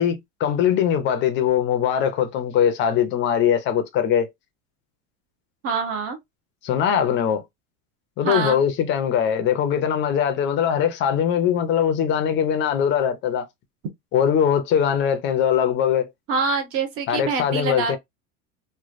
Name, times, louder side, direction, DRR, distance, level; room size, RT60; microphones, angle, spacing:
voice 1, 0.0-4.3 6.6-7.4 8.2-13.5 14.1-16.1 17.1-18.0, left 8 dB, 30° left, 0.5 m, -21 dB
voice 2, 5.6-6.2 8.2-8.6 16.3-18.0, right 4 dB, 35° right, 0.8 m, -25 dB
3.1 x 2.2 x 2.5 m
cardioid pair, 165°, 39 cm